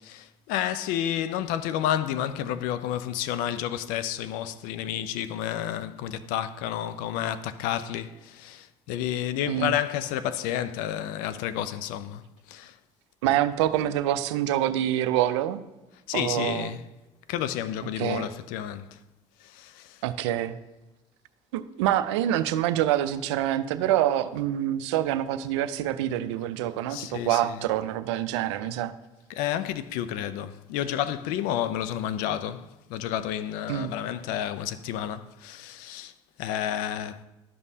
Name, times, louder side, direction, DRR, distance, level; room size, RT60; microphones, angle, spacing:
voice 1, 0.0-12.2 12.5-12.7 16.1-16.8 17.3-19.0 19.4-20.0 26.9-27.6 29.3-36.1 36.4-37.2, left 11 dB, 75° left, 0.5 m, -30 dB
voice 2, 13.2-15.6 16.1-16.7 18.0-18.3 20.0-20.6 21.5-28.9 33.7-33.9, right 12 dB, 90° right, 0.4 m, -26 dB
12.5 x 5.3 x 2.7 m
supercardioid pair, 75°, 14 cm